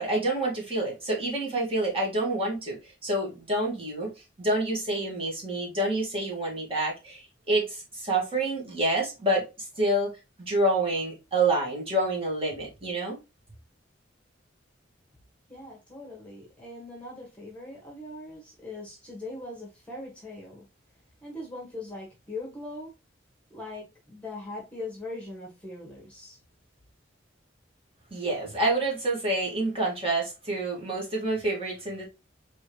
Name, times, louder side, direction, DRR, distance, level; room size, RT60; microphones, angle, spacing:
voice 1, 0.0-4.1 4.4-10.1 10.4-13.2 28.1-32.0, right 1 dB, 30° right, 2.0 m, -28 dB
voice 2, 15.5-20.6 21.2-22.9 23.5-26.4, left 2 dB, 5° left, 1.3 m, -40 dB
4.5 x 3.2 x 3.1 m
head